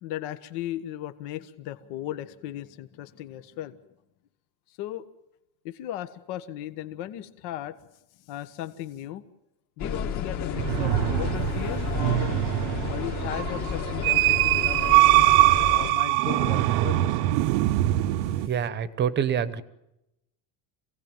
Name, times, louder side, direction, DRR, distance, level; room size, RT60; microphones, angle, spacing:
voice 1, 0.0-3.8 4.8-5.1 5.6-7.8 8.3-9.2 9.8-12.5 12.8-15.3 15.7-17.3, left 12 dB, 60° left, 11 dB, 1.5 m, -36 dB
sound 1, 9.8-15.9, left 6 dB, 40° left, 2.5 m, -32 dB
sound 2, 10.6-18.5, right 17 dB, 65° right, 0.9 m, -23 dB
voice 2, 18.4-19.6, right 8 dB, 25° right, 15 dB, 1.0 m, -26 dB
27.0 x 17.5 x 9.1 m, 0.89 s
cardioid pair, 170°, 45 cm